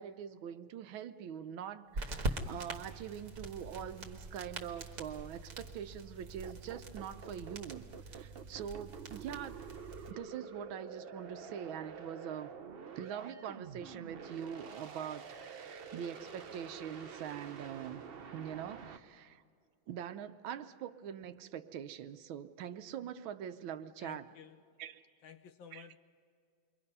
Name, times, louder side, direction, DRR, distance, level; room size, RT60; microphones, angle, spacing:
voice 1, 0.0-9.6 10.1-12.5 13.0-18.0 18.3-19.4 19.9-24.2 24.8-25.0 25.7-25.9, right 9 dB, 85° right, 1.6 m, -43 dB
sound 1, 1.9-10.1, right 2 dB, 45° right, 1.7 m, -43 dB
sound 2, 6.4-19.0, right 6 dB, 70° right, 0.5 m, -48 dB
voice 2, 24.0-24.6 25.2-26.0, left 8 dB, 80° left, 1.5 m, -53 dB
28.5 x 22.5 x 5.5 m
omnidirectional pair, 2.1 m